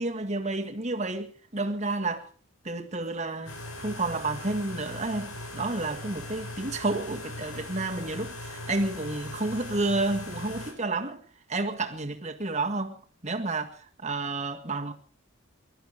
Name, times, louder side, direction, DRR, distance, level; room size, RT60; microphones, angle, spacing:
voice 1, 0.0-2.3 2.6-11.2 11.5-14.9, right 2 dB, 30° right, 1.8 m, -31 dB
sound 1, 3.5-10.7, left 1 dB, 75° left, 5.5 m, -39 dB
22.5 x 13.0 x 5.0 m
head